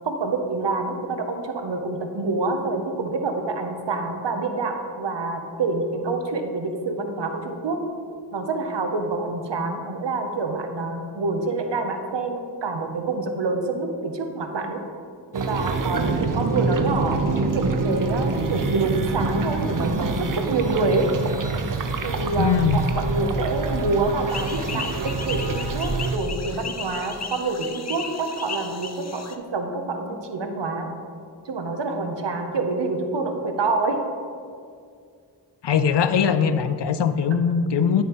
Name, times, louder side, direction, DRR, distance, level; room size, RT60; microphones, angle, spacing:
voice 1, 0.0-7.8 8.3-14.8 15.5-21.1 22.0-30.9 31.4-34.0, right 3 dB, 90° right, 5 dB, 0.8 m, -27 dB
sound 1, 15.3-26.2, right 3 dB, 50° right, 0.7 m, -26 dB
voice 2, 22.4-22.8 24.7-24.8 35.6-38.0, left 7 dB, 80° left, 11 dB, 0.5 m, -21 dB
sound 2, 24.3-29.4, left 5 dB, 40° left, 0.7 m, -35 dB
10.0 x 6.9 x 3.0 m, 2.2 s
cardioid pair, 40°, 41 cm